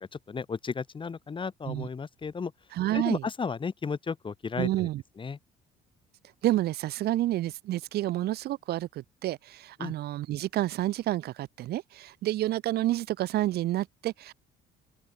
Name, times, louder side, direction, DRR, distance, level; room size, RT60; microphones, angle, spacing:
voice 1, 0.0-2.5 2.9-4.9 5.2-5.4 9.8-9.9, left 5 dB, 30° left, 4.2 m, -34 dB
voice 2, 2.7-3.2 4.6-5.0 6.4-14.3, right 15 dB, 70° right, 1.3 m, -29 dB
open air
cardioid pair, 110°, 17 cm